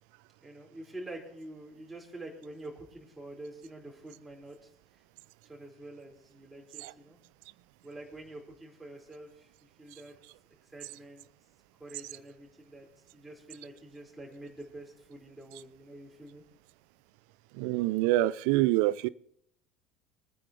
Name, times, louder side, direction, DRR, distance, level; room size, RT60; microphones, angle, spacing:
voice 1, 0.4-4.7 5.4-7.2 7.8-10.1 10.6-11.3 11.8-12.9 13.1-16.4, right 1 dB, 10° right, 5.1 m, -47 dB
voice 2, 17.6-19.1, right 16 dB, 60° right, 0.5 m, -26 dB
24.0 x 9.7 x 3.4 m
figure-of-eight pair, 70°, 0 cm